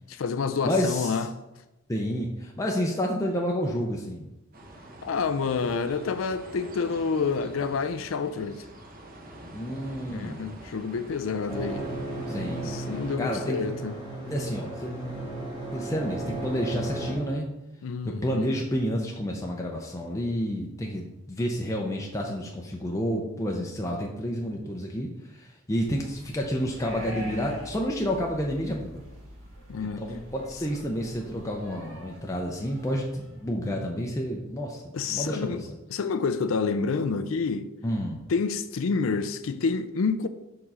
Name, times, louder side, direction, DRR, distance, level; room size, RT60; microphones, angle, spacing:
voice 1, 0.1-1.3 5.0-8.7 10.1-11.9 12.3-13.9 17.8-18.5 29.7-30.0 34.9-35.6 35.9-37.7 38.3-40.3, left 5 dB, 75° left, 0.4 m, -28 dB
voice 2, 0.6-1.3 1.9-4.3 9.5-10.4 12.3-12.7 13.2-13.6 14.3-15.2 15.7-17.5 18.0-29.0 29.8-34.8 35.1-35.6 37.8-38.2, equal, 15° left, 0.5 m, -30 dB
sound 1, 4.5-13.2, right 1 dB, 45° right, 0.8 m, -46 dB
sound 2, 11.5-17.2, right 2 dB, 20° right, 1.7 m, -34 dB
sound 3, 25.8-33.5, equal, 80° right, 2.0 m, -45 dB
4.8 x 3.7 x 5.4 m
head